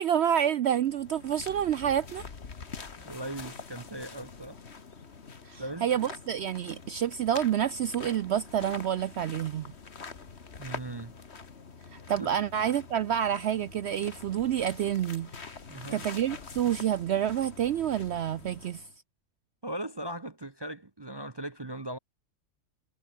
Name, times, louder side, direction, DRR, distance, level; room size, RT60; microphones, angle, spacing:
voice 1, 0.0-2.2 5.5-9.7 11.9-15.6 15.9-18.8, right 10 dB, 65° right, 0.6 m, -28 dB
sound 1, 0.7-18.9, left 5 dB, 45° left, 1.9 m, -45 dB
voice 2, 3.0-4.6 5.6-5.9 10.6-11.1 12.2-12.3 15.7-16.0 19.6-22.0, right 1 dB, 25° right, 0.6 m, -38 dB
omnidirectional pair, 1.5 m